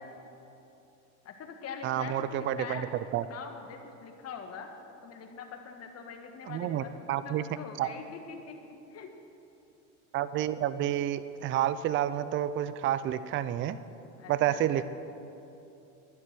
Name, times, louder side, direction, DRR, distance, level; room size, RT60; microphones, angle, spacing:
voice 1, 1.2-2.9 3.2-4.7 5.0-6.9 7.2-9.1 14.2-14.8, left 6 dB, 40° left, 5 dB, 1.6 m, -43 dB
voice 2, 1.8-2.9 3.1-3.2 6.5-7.4 7.8-7.9 10.1-13.8 14.3-14.8, right 11 dB, 35° right, 15 dB, 0.4 m, -29 dB
11.0 x 10.5 x 6.1 m, 2.9 s
supercardioid pair, 95°, 38 cm